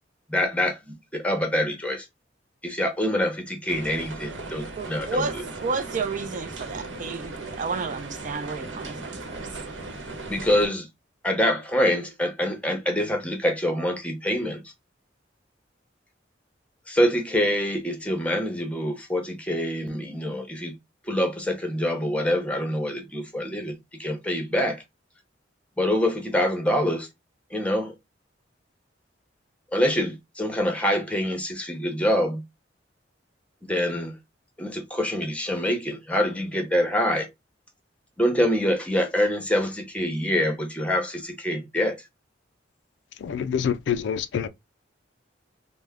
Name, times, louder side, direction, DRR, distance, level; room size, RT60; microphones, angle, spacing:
voice 1, 0.3-2.1 2.6-5.3 10.3-10.9 11.2-14.6 16.9-20.7 21.1-23.7 24.0-24.8 25.8-27.1 27.5-27.9 29.7-32.4 33.7-34.1 34.6-37.3 38.2-42.0, left 1 dB, 5° left, 0.8 m, -25 dB
sound 1, 3.7-10.7, right 3 dB, 85° right, 0.9 m, -37 dB
voice 2, 4.8-9.5, right 4 dB, 45° right, 0.4 m, -31 dB
voice 3, 43.2-44.5, left 8 dB, 65° left, 0.3 m, -26 dB
3.4 x 2.1 x 3.4 m
head